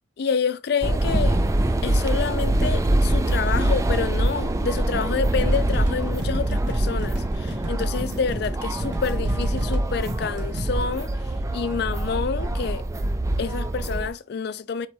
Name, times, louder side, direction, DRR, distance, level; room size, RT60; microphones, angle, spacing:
voice 1, 0.2-1.4 1.8-11.1 11.5-12.8 13.4-14.9, left 6 dB, 60° left, 0.4 m, -28 dB
sound 1, 0.8-14.1, right 1 dB, 15° right, 0.3 m, -24 dB
sound 2, 5.5-10.7, equal, 70° right, 1.3 m, -35 dB
4.6 x 4.1 x 2.7 m
head